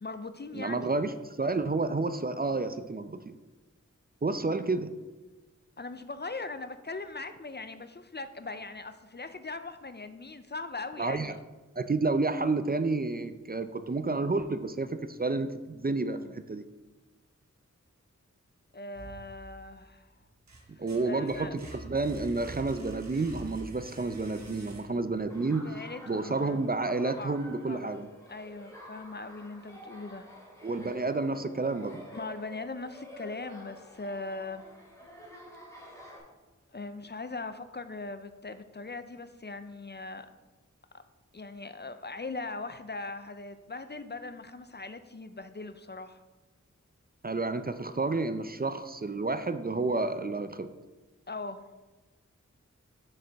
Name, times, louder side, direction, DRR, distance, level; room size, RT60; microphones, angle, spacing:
voice 1, 0.0-0.9 5.8-11.4 16.1-16.3 18.7-20.1 20.8-21.6 25.6-26.7 27.0-28.0 28.3-30.3 32.1-34.7 36.7-40.3 41.3-46.2 51.3-51.7, left 3 dB, 35° left, 10 dB, 0.5 m, -40 dB
voice 2, 0.6-3.3 4.2-4.9 11.0-11.3 11.8-16.6 20.8-25.7 26.1-28.1 30.6-32.0 47.2-50.7, right 3 dB, 30° right, 10 dB, 0.4 m, -30 dB
sound 1, 18.9-19.8 20.2-25.2, right 2 dB, 65° right, 1.3 m, -46 dB
Laughter, 25.3-36.2, equal, 10° left, 2.4 m, -49 dB
6.7 x 6.6 x 3.5 m, 1.2 s
wide cardioid pair, 45°, 30 cm